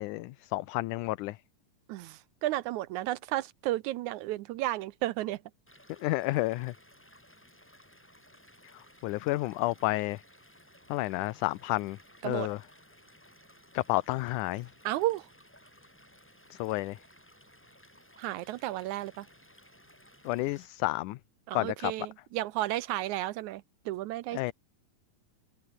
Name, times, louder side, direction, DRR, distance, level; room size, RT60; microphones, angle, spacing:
voice 1, 0.0-1.4 6.0-6.7 9.0-10.2 10.9-12.0 12.2-12.6 13.7-14.7 16.5-17.0 20.3-21.2 21.5-21.9 24.3-24.5, left 19 dB, 75° left, 2.0 m, -30 dB
voice 2, 1.9-5.4 12.2-12.5 14.8-15.3 18.2-19.3 21.5-24.5, right 15 dB, 75° right, 1.8 m, -33 dB
Stream / Liquid, 5.7-20.7, equal, 5° left, 4.5 m, -58 dB
omnidirectional pair, 3.9 m